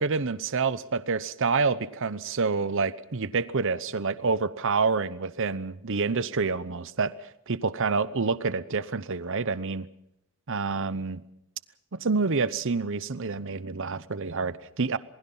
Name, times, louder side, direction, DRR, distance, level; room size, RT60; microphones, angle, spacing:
voice 1, 0.0-7.1 7.5-9.9 10.5-11.2 12.0-15.0, right 4 dB, 60° right, 16 dB, 0.9 m, -27 dB
27.5 x 21.0 x 5.6 m, 0.77 s
head